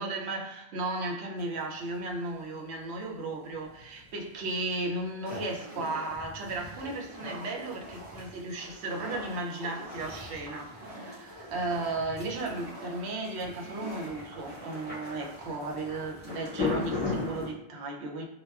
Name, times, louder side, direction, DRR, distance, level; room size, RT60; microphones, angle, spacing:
voice 1, 0.0-18.3, right 2 dB, 85° right, 1 dB, 0.8 m, -35 dB
sound 1, 1.4-17.5, left 4 dB, 10° left, 1.3 m, -41 dB
sound 2, 5.3-16.3, right 1 dB, 30° right, 1.4 m, -45 dB
3.5 x 2.2 x 2.3 m, 0.88 s
omnidirectional pair, 1.1 m